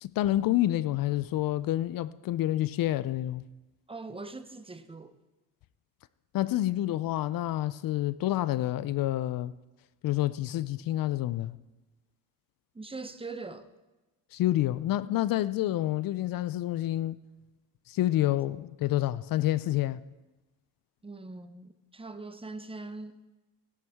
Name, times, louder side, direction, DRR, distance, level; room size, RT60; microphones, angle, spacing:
voice 1, 0.0-3.4 6.3-9.5 10.0-11.6 14.3-17.2 17.9-20.0, left 14 dB, 60° left, 0.5 m, -28 dB
voice 2, 3.9-5.2 12.7-13.7 21.0-23.2, right 3 dB, 15° right, 0.7 m, -42 dB
16.5 x 11.0 x 3.5 m
cardioid pair, 100°, 38 cm